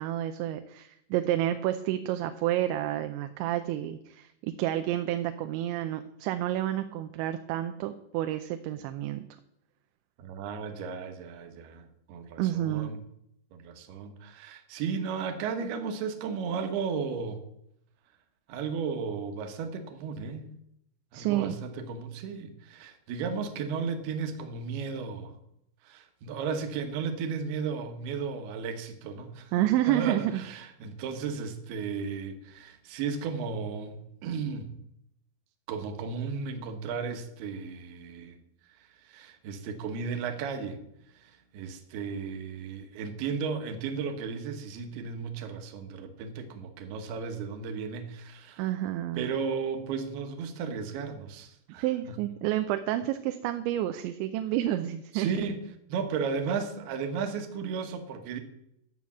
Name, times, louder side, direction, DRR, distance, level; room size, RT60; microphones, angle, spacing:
voice 1, 0.0-9.3 12.4-12.9 21.1-21.5 29.5-30.4 48.6-49.2 51.7-55.3, right 13 dB, 85° right, 8 dB, 3.0 m, -29 dB
voice 2, 10.2-13.0 13.5-17.4 18.5-20.5 21.1-25.3 25.8-29.5 29.9-34.8 35.7-38.4 38.8-40.8 41.1-48.7 49.2-52.2 55.1-55.6 55.9-58.4, right 5 dB, 70° right, 6 dB, 3.0 m, -34 dB
11.5 x 7.1 x 7.3 m, 0.77 s
omnidirectional pair, 5.2 m